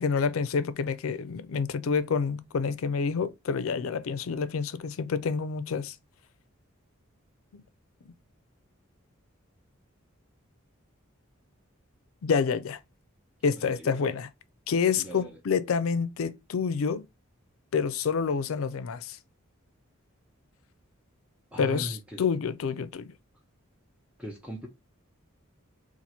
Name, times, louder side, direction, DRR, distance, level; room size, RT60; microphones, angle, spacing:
voice 1, 0.0-5.9 12.2-12.8 13.4-14.3 14.7-17.0 17.7-19.2 21.6-23.1, left 5 dB, 80° left, 0.4 m, -28 dB
voice 2, 13.5-14.2 15.0-15.4 21.5-22.2 24.2-24.7, equal, 5° right, 0.6 m, -39 dB
2.9 x 2.4 x 4.1 m
head